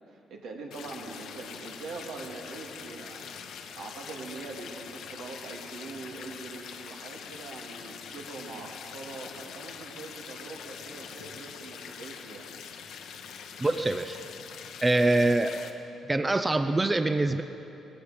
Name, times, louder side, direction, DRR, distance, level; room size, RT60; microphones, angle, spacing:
voice 1, 0.0-12.5, right 3 dB, 85° right, 0 dB, 2.2 m, -43 dB
sound 1, 0.7-15.7, left 7 dB, 80° left, 1.1 m, -44 dB
voice 2, 13.6-14.2 14.8-15.7 16.1-17.4, right 2 dB, 20° right, 9 dB, 0.6 m, -24 dB
17.5 x 15.5 x 5.1 m, 3.0 s
cardioid pair, 90°, 0 cm